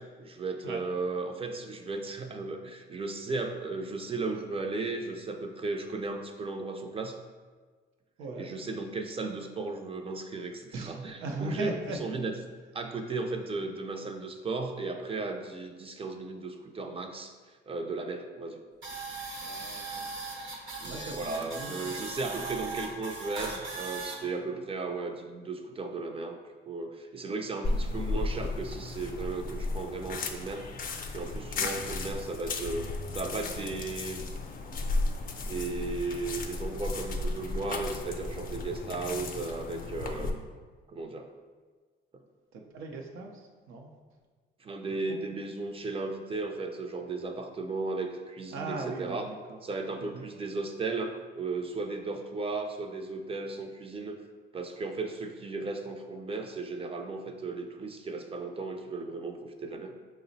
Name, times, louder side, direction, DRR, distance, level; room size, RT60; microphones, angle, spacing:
voice 1, 0.0-7.2 8.4-11.7 12.0-12.3 12.7-17.3 17.7-18.6 20.8-26.4 26.7-30.6 31.1-32.9 33.1-34.3 35.4-40.6 40.9-41.3 44.6-49.2 49.6-54.2 54.5-59.9, right 3 dB, 30° right, 4 dB, 0.4 m, -35 dB
voice 2, 8.2-8.5 10.7-12.0 19.4-22.0 22.2-22.5 27.8-27.9 31.6-31.8 42.5-43.9 45.1-45.2 48.5-49.6 50.0-50.3, right 3 dB, 85° right, 1 dB, 0.6 m, -39 dB
sound 1, 18.8-24.2, right 3 dB, 70° right, 0.9 m, -38 dB
sound 2, 27.6-40.3, left 3 dB, 45° left, 0.5 m, -34 dB
4.9 x 2.0 x 3.9 m, 1.4 s
cardioid pair, 90°, 20 cm